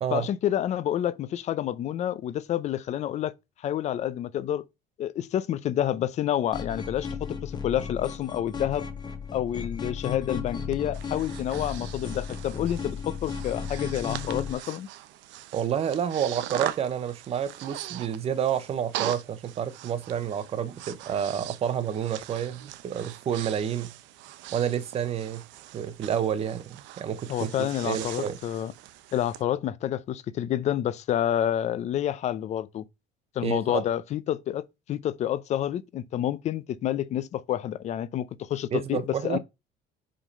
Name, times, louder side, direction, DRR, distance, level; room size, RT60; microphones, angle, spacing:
voice 1, 0.1-3.3 3.6-4.6 5.0-8.9 9.3-14.9 27.3-28.7 29.1-32.8 33.3-34.6 34.9-39.4, left 11 dB, 40° left, 0.6 m, -29 dB
sound 1, 6.5-14.5, left 6 dB, 20° left, 1.1 m, -35 dB
Breathing, 10.7-29.4, right 14 dB, 80° right, 0.8 m, -41 dB
voice 2, 15.5-23.9 24.5-25.4 25.7-28.4 33.4-33.8 38.7-39.4, right 8 dB, 30° right, 0.8 m, -29 dB
5.7 x 5.1 x 5.3 m
cardioid pair, 175°, 19 cm